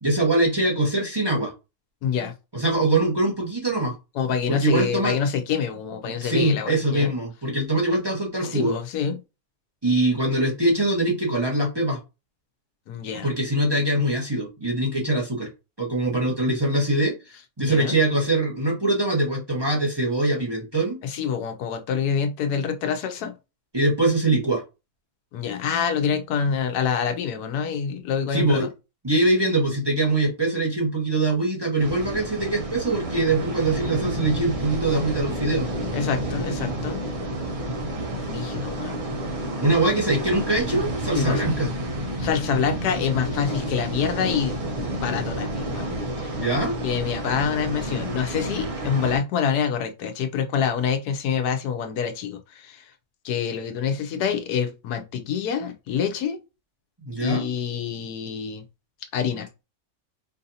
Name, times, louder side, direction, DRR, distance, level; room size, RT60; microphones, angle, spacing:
voice 1, 0.0-1.5 2.5-3.9 4.5-5.2 6.2-8.7 9.8-12.0 13.2-15.5 15.8-17.1 17.6-21.0 23.7-24.6 28.3-28.7 29.0-35.7 39.6-41.7 46.4-46.8 57.0-57.5, right 2 dB, 20° right, 1.0 m, -23 dB
voice 2, 2.0-2.3 4.2-7.1 8.4-9.2 12.9-13.3 17.6-17.9 21.0-23.3 25.3-28.7 35.9-37.0 38.2-39.1 41.1-41.5 42.2-45.9 46.2-46.4 46.8-52.9 53.2-56.4 57.2-58.6 59.1-59.5, left 7 dB, 90° left, 1.2 m, -26 dB
sound 1, 31.8-49.2, right 1 dB, 45° right, 0.4 m, -30 dB
4.5 x 2.6 x 2.7 m
omnidirectional pair, 1.6 m